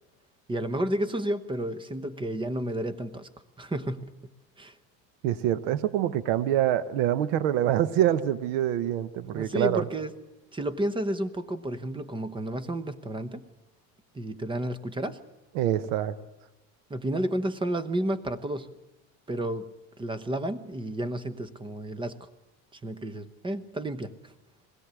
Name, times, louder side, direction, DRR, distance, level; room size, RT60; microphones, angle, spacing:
voice 1, 0.5-3.3 3.6-4.2 4.6-4.7 9.3-10.1 10.5-13.5 14.1-15.2 16.9-18.7 19.3-19.7 20.0-22.3 22.7-24.3, right 1 dB, 15° right, 13 dB, 0.9 m, -31 dB
voice 2, 5.2-9.8 15.5-16.2, right 11 dB, 80° right, 16 dB, 1.0 m, -25 dB
21.0 x 16.5 x 8.2 m, 0.98 s
supercardioid pair, 125°, 38 cm